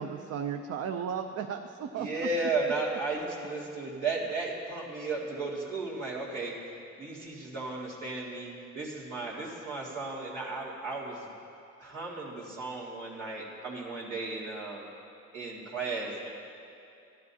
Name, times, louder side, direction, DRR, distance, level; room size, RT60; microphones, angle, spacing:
voice 1, 0.0-2.3, right 7 dB, 55° right, 5 dB, 0.5 m, -35 dB
voice 2, 2.0-6.6 7.0-11.3 11.8-14.9 15.3-16.3, right 3 dB, 90° right, -6 dB, 2.2 m, -34 dB
14.5 x 11.0 x 2.8 m, 2.6 s
cardioid pair, 90°, 30 cm